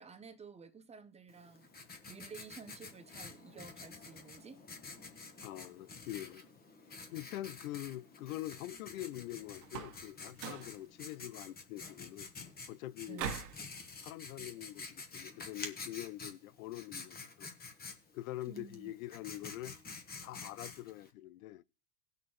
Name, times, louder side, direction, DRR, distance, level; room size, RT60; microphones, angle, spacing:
voice 1, 0.0-1.7 2.1-4.6 13.1-13.4 18.5-18.9, right 5 dB, 15° right, 0.6 m, -52 dB
Writing, 1.3-21.1, left 4 dB, 20° left, 1.1 m, -49 dB
voice 2, 5.4-6.4 7.1-12.3 12.7-13.3 14.0-17.5 18.1-19.7 20.2-21.6, left 15 dB, 60° left, 0.5 m, -44 dB
sound 1, 9.6-10.0 10.3-10.7 13.2-13.6, right 8 dB, 75° right, 1.6 m, -40 dB
18.0 x 6.4 x 3.1 m
hypercardioid pair, 105°, 48 cm